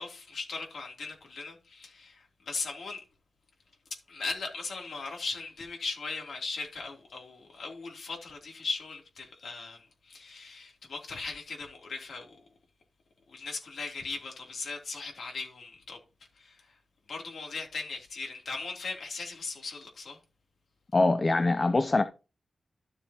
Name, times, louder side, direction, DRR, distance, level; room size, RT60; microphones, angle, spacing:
voice 1, 0.0-3.0 4.1-12.4 13.3-16.0 16.4-16.7 17.1-20.2, left 4 dB, 85° left, 3.1 m, -38 dB
voice 2, 20.9-22.0, left 2 dB, 30° left, 0.6 m, -23 dB
12.5 x 7.0 x 2.9 m
wide cardioid pair, 135°, 0 cm